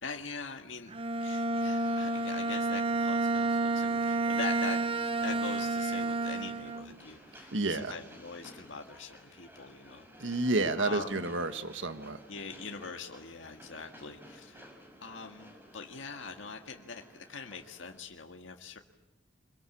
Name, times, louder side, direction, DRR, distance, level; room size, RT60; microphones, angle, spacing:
voice 1, 0.0-0.9 1.2-10.5 10.8-11.3 12.3-14.7 15.0-18.8, left 4 dB, 85° left, 3 dB, 1.7 m, -43 dB
Bowed string instrument, 0.9-7.0, right 2 dB, 30° right, 0.8 m, -30 dB
Train, 1.8-18.0, equal, 10° right, 5.7 m, -55 dB
voice 2, 7.5-7.9 10.2-12.2, right 2 dB, 80° right, 9 dB, 1.7 m, -30 dB
25.5 x 22.5 x 8.6 m, 0.98 s
head